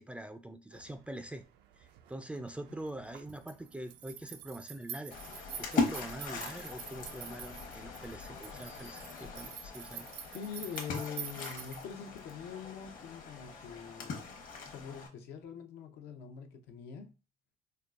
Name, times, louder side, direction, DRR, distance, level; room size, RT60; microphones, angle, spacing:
voice 1, 0.0-1.4 1.8-5.2 5.6-10.1, right 1 dB, 5° right, 0.3 m, -44 dB
sound 1, 0.7-11.8, right 9 dB, 80° right, 0.5 m, -48 dB
Splash splatter, 5.1-15.1, left 4 dB, 55° left, 0.9 m, -40 dB
voice 2, 10.3-14.3 14.6-17.1, left 7 dB, 80° left, 0.7 m, -44 dB
4.5 x 2.2 x 2.4 m
cardioid pair, 110°, 17 cm